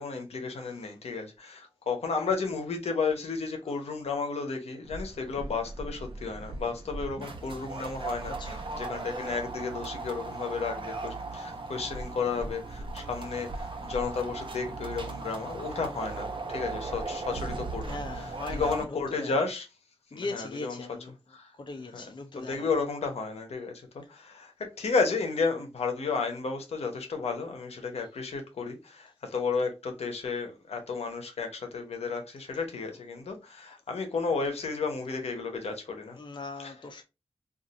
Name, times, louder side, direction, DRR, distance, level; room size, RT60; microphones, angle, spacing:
voice 1, 0.0-17.8 18.1-19.7 20.1-21.5 21.9-36.2 36.6-36.9, left 4 dB, 80° left, 0.8 m, -33 dB
voice 2, 0.6-0.9 8.3-8.7 17.8-19.4 20.1-21.1 21.6-22.7 36.1-37.0, left 3 dB, 45° left, 0.5 m, -40 dB
sound 1, 4.9-18.8, right 3 dB, 50° right, 0.8 m, -37 dB
2.5 x 2.5 x 3.9 m
cardioid pair, 50°, 11 cm